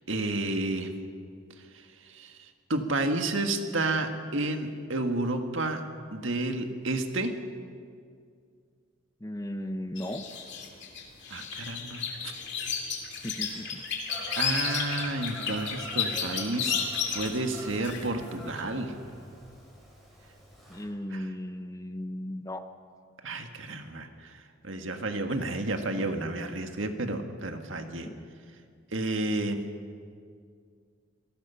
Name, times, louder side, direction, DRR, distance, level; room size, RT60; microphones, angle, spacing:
voice 1, 0.1-0.9 2.1-2.3 2.7-5.8 6.1-7.3 11.3-12.3 14.4-18.9 21.1-21.3 23.2-24.3 24.6-28.1 28.9-29.6, right 2 dB, 70° right, 5 dB, 1.8 m, -31 dB
voice 2, 9.2-10.2 13.2-13.8 20.7-22.7 26.0-26.2 28.1-28.2, left 1 dB, 15° left, 9 dB, 0.7 m, -36 dB
sound 1, 10.0-18.3 18.6-18.7, left 6 dB, 55° left, 2.8 m, -33 dB
Fowl / Bird vocalization bird call bird song, 14.1-20.8, equal, ahead, 7.5 m, -46 dB
26.5 x 18.0 x 5.7 m, 2.2 s
head